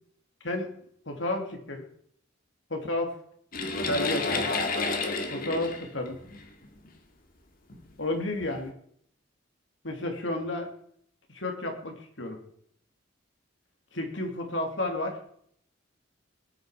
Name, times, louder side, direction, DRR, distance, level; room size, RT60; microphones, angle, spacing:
voice 1, 1.1-1.8 2.7-3.1 3.9-4.5 5.3-6.2 8.0-8.7 9.8-10.7 11.3-12.4 13.9-15.2, left 1 dB, 70° left, 3 dB, 3.1 m, -31 dB
sound 1, 3.5-6.9 7.7-7.8 8.4-8.6, left 3 dB, 45° left, 2.2 m, -30 dB
20.0 x 11.0 x 5.2 m, 0.66 s
head